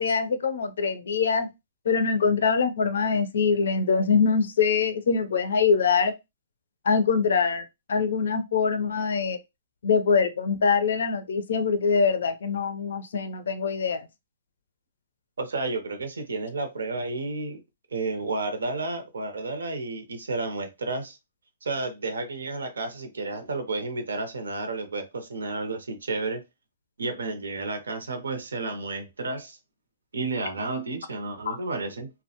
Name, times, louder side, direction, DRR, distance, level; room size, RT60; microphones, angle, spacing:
voice 1, 0.0-1.5 1.9-6.1 6.8-9.4 9.8-14.1 31.5-31.6, left 5 dB, 70° left, 0.4 m, -24 dB
voice 2, 15.4-17.6 17.9-21.2 21.6-26.4 27.0-29.6 30.1-32.1, right 3 dB, 85° right, 0.6 m, -31 dB
2.2 x 2.0 x 2.8 m
hypercardioid pair, 130°, 0 cm